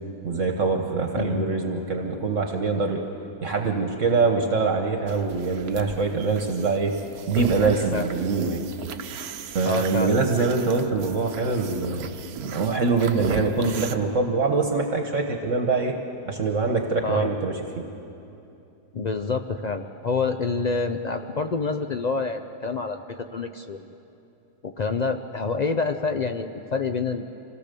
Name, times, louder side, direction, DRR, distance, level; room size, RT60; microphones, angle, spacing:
voice 1, 0.2-3.0 3.4-6.9 7.3-8.7 9.5-12.1 12.4-16.0 16.3-17.6, right 4 dB, 60° right, 3 dB, 1.5 m, -24 dB
voice 2, 1.2-1.5 7.9-8.1 9.6-10.2 17.0-17.3 18.9-23.0 23.3-23.8 24.6-27.2, left 4 dB, 65° left, 6 dB, 0.4 m, -27 dB
sound 1, 5.1-13.9, right 8 dB, 90° right, 1.3 m, -37 dB
26.0 x 17.0 x 6.8 m, 2.8 s
omnidirectional pair, 1.6 m